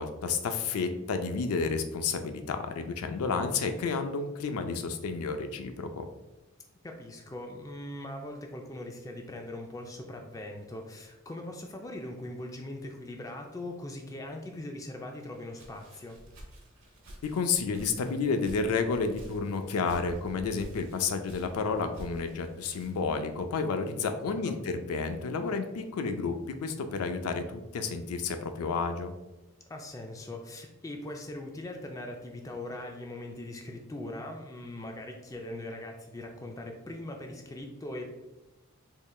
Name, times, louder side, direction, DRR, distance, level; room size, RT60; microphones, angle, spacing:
voice 1, 0.0-6.0 17.2-29.1, left 4 dB, 85° left, 7 dB, 0.4 m, -31 dB
voice 2, 6.8-16.2 24.0-24.6 29.7-38.2, left 1 dB, 15° left, 2 dB, 0.3 m, -41 dB
Walk footsteps, 15.2-23.1, equal, 65° right, 1.1 m, -49 dB
3.7 x 3.1 x 2.3 m, 1.0 s
head